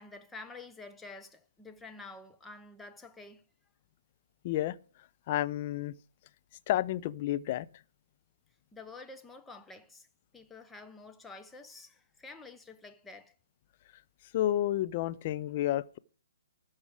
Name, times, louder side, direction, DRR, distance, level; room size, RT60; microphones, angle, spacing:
voice 1, 0.0-3.4 8.7-10.1 10.3-13.3, left 3 dB, 5° left, 0.8 m, -49 dB
voice 2, 4.4-4.8 5.3-5.9 6.7-7.7 14.3-16.0, left 13 dB, 40° left, 0.5 m, -30 dB
13.0 x 4.8 x 8.4 m
figure-of-eight pair, 125°, 0 cm